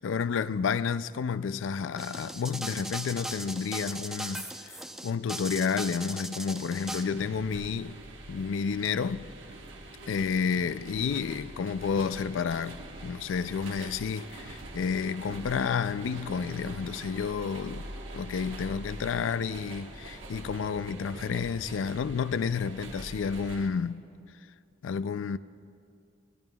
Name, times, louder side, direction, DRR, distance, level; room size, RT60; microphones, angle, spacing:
voice 1, 0.0-8.0 8.3-9.3 10.1-17.9 18.1-24.0 24.8-25.4, left 6 dB, 90° left, 0.4 m, -30 dB
sound 1, 2.0-7.0, right 1 dB, ahead, 0.7 m, -38 dB
sound 2, 6.7-23.7, right 1 dB, 85° right, 1.3 m, -44 dB
25.0 x 17.5 x 2.3 m
head